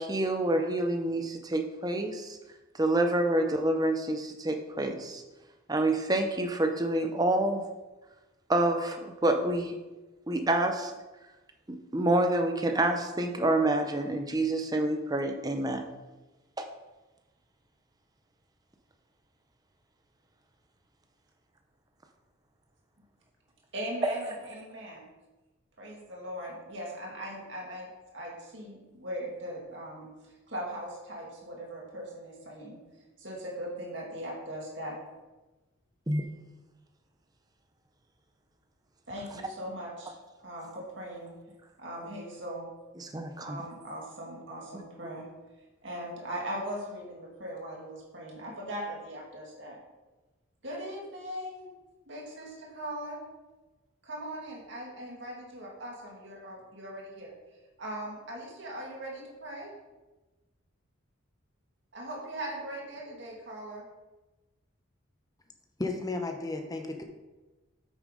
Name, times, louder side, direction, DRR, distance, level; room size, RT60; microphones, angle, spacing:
voice 1, 0.0-2.4 2.7-5.2 5.7-7.6 8.5-9.7 10.3-10.9 11.7-15.9 16.6-16.7 24.0-24.2 36.1-36.3 43.0-43.6, right 1 dB, 20° right, 5 dB, 0.7 m, -27 dB
voice 2, 23.7-25.1 25.8-30.1 30.5-32.8 33.2-35.0 39.1-40.1 40.4-41.3 41.8-42.7 43.4-45.3 45.8-49.8 50.6-51.7 52.1-53.2 54.0-57.3 57.8-59.7 61.9-63.8, equal, 60° right, -2 dB, 2.2 m, -39 dB
voice 3, 65.8-67.0, left 2 dB, 20° left, 4 dB, 0.8 m, -33 dB
8.6 x 6.3 x 3.9 m, 1.1 s
head